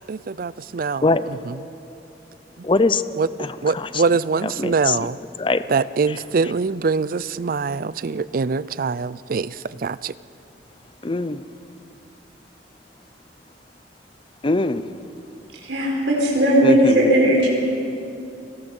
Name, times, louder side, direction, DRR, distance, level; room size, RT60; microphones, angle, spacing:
voice 1, 0.1-1.0 1.5-1.6 3.2-3.3 3.6-5.2 5.7-10.1, right 4 dB, 50° right, 18 dB, 0.4 m, -23 dB
voice 2, 2.6-3.0 3.4-4.0 4.4-5.0 5.4-5.6 6.1-6.2 11.0-11.4 14.4-14.9 16.6-17.3, left 3 dB, 30° left, 13 dB, 0.6 m, -22 dB
voice 3, 15.6-17.5, equal, 90° right, -2 dB, 4.7 m, -17 dB
29.5 x 19.0 x 5.5 m, 2.7 s
head